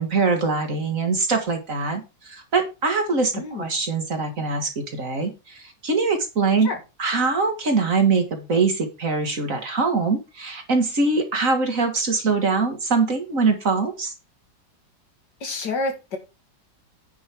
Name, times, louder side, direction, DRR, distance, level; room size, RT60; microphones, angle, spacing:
voice 1, 0.0-6.7 7.0-14.1, right 4 dB, 50° right, 5 dB, 2.2 m, -23 dB
voice 2, 3.3-3.7 6.6-6.8 15.4-16.2, left 3 dB, 70° left, 4 dB, 2.5 m, -28 dB
9.6 x 5.3 x 4.7 m, 0.27 s
omnidirectional pair, 1.9 m